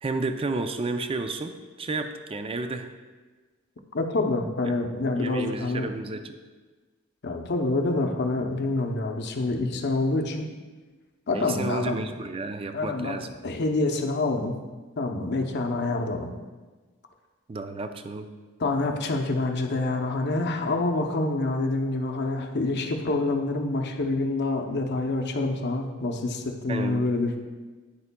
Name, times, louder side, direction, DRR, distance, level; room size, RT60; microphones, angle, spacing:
voice 1, 0.0-2.9 4.7-4.8 5.2-6.3 11.3-13.3 17.5-18.3 26.7-27.1, right 3 dB, 25° right, 8 dB, 0.4 m, -31 dB
voice 2, 3.9-5.9 7.2-10.4 11.3-12.0 12.7-13.2 13.4-14.5 15.0-16.3 18.6-27.4, left 2 dB, 50° left, 4 dB, 0.7 m, -27 dB
9.7 x 6.8 x 2.2 m, 1.3 s
head